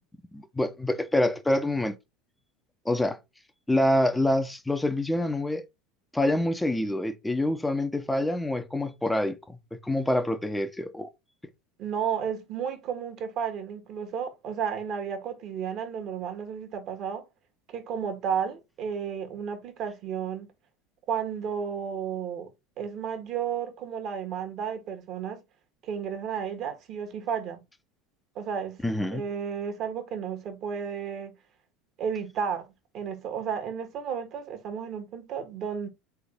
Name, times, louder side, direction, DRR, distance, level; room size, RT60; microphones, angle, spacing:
voice 1, 0.3-1.9 2.8-3.2 3.7-5.6 6.1-9.6 9.8-11.1 28.8-29.2, left 1 dB, 10° left, 0.8 m, -26 dB
voice 2, 11.8-17.2 17.7-20.5 21.1-22.5 22.8-25.4 25.8-27.6 28.3-28.8 29.1-31.3 32.0-35.9, right 7 dB, 50° right, 1.5 m, -32 dB
3.9 x 3.6 x 3.7 m
hypercardioid pair, 80°, 0 cm